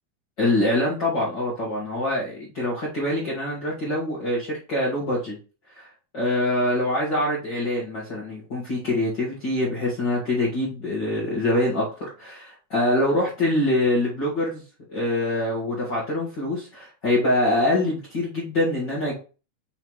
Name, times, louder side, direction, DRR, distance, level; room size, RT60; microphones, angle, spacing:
voice 1, 0.4-5.4 5.7-5.9 6.1-11.9 12.2-14.6 14.9-19.2, left 1 dB, 40° left, -7 dB, 2.1 m, -24 dB
5.8 x 5.7 x 3.1 m, 0.35 s
omnidirectional pair, 3.6 m